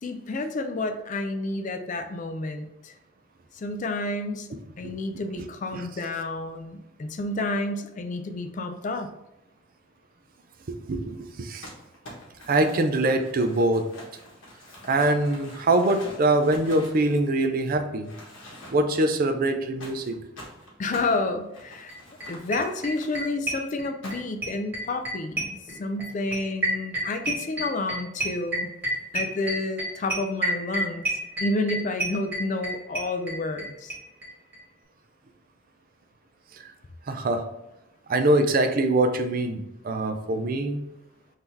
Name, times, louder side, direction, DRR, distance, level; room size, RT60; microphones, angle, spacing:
voice 1, 0.0-2.9 3.5-4.5 4.8-9.1 20.8-21.9 22.2-28.7 29.1-33.9, left 2 dB, 40° left, 7 dB, 0.4 m, -30 dB
voice 2, 10.7-11.7 12.5-13.9 14.8-18.1 18.7-20.2 36.5-36.7 37.1-37.5 38.1-40.8, right 2 dB, 45° right, 7 dB, 0.4 m, -24 dB
Crumpling crinkling, 11.6-17.7 18.0-19.0 19.8-23.3 24.0-24.5, left 1 dB, 70° left, 1.4 m, -45 dB
sound 1, 21.9-22.0 22.2-22.3 22.5-24.2 24.4-33.6 33.9-34.0 34.2-34.3 34.5-34.6, right 2 dB, 10° right, 1.4 m, -29 dB
3.8 x 2.7 x 4.5 m, 0.87 s
head